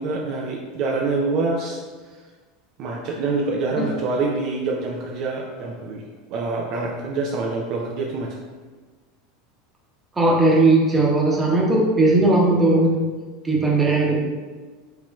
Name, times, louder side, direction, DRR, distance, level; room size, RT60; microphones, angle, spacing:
voice 1, 0.0-1.8 2.8-8.4, right 3 dB, 55° right, -1 dB, 0.5 m, -26 dB
voice 2, 10.2-13.0 13.4-14.2, right 2 dB, 15° right, -3 dB, 1.0 m, -17 dB
4.7 x 3.0 x 2.3 m, 1.4 s
hypercardioid pair, 85°, 0 cm